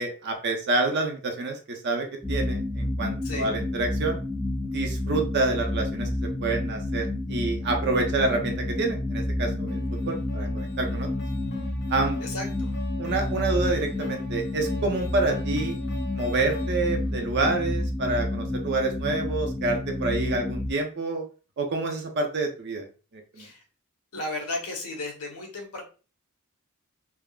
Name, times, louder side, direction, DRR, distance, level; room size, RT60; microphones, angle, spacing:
voice 1, 0.0-4.2 4.7-6.1 6.4-9.8 10.1-11.1 11.9-12.2 13.0-15.8 16.1-21.2 21.6-22.8 23.1-23.5, right 3 dB, 50° right, 3 dB, 0.6 m, -28 dB
sound 1, 2.2-20.7, left 1 dB, 5° left, 0.4 m, -30 dB
voice 2, 3.2-3.5 12.2-12.7 23.4-23.6 24.1-25.8, left 2 dB, 85° left, 1 dB, 1.0 m, -34 dB
sound 2, 9.7-17.1, left 1 dB, 50° left, 0.7 m, -44 dB
3.5 x 2.0 x 2.3 m, 0.35 s
head